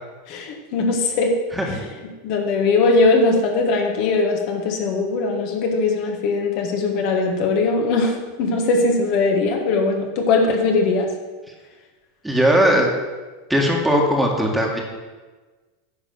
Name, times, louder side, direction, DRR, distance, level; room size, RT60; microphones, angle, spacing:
voice 1, 0.3-1.3 2.2-8.1 8.4-11.1, left 3 dB, 60° left, 2 dB, 1.6 m, -20 dB
voice 2, 12.2-12.9 13.5-14.8, equal, 5° right, 0 dB, 1.7 m, -18 dB
9.5 x 4.2 x 7.1 m, 1.3 s
hypercardioid pair, 110°, 0 cm